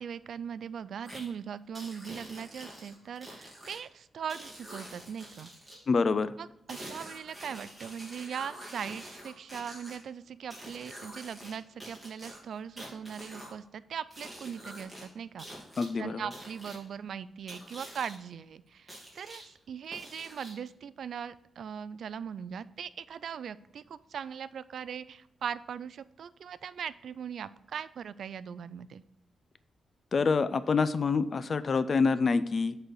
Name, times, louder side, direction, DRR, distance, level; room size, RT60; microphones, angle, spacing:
voice 1, 0.0-5.5 6.4-15.6 16.0-29.0, right 7 dB, 70° right, 16 dB, 0.3 m, -40 dB
sound 1, 1.0-1.2 1.7-3.8 4.3-5.8 6.7-10.0 10.5-11.5 11.8-13.5 14.1-15.0 15.4-15.9 16.3-16.8 17.5-18.1 18.9-19.4 19.9-20.7, right 1 dB, 5° right, 3.0 m, -46 dB
voice 2, 5.9-6.3 15.8-16.2 30.1-32.8, left 4 dB, 45° left, 14 dB, 0.4 m, -26 dB
7.8 x 4.1 x 6.4 m, 0.84 s
cardioid pair, 110°, 0 cm